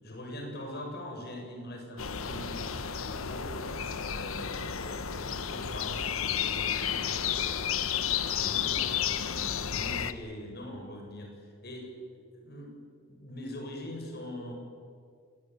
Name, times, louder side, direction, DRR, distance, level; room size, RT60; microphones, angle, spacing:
voice 1, 0.0-3.7 4.1-9.3 9.7-12.0 12.3-12.7 13.1-14.5, left 1 dB, 50° left, 2 dB, 7.4 m, -43 dB
sound 1, 2.0-10.1, left 8 dB, 90° left, 1.2 m, -32 dB
27.0 x 20.5 x 9.6 m, 2.1 s
head